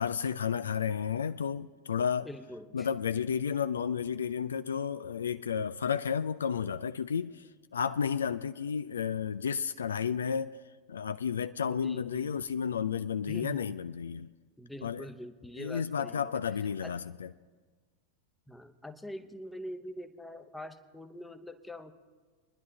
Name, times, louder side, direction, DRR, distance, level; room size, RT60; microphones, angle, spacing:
voice 1, 0.0-2.3 2.7-10.6 10.9-14.3 14.8-15.1 15.6-17.3, left 7 dB, 70° left, 0.3 m, -32 dB
voice 2, 2.2-2.9 11.7-12.4 13.3-13.8 14.6-16.4 16.8-16.9 18.5-21.9, left 1 dB, 5° left, 0.8 m, -44 dB
26.5 x 10.5 x 2.9 m
figure-of-eight pair, 90°, 0 cm